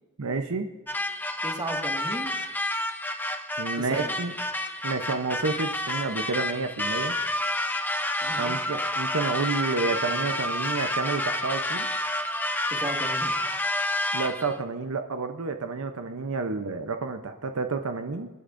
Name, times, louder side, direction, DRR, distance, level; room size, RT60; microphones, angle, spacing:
voice 1, 0.2-0.7 3.6-4.3 4.8-7.1 8.3-11.9 14.1-18.3, right 4 dB, 65° right, 7 dB, 0.7 m, -30 dB
sound 1, 0.9-14.5, left 1 dB, 10° left, 0.6 m, -29 dB
voice 2, 1.4-2.4 3.8-4.1 8.2-8.6 12.7-13.3, right 2 dB, 20° right, 1 dB, 1.8 m, -35 dB
26.0 x 10.0 x 2.6 m, 1.3 s
head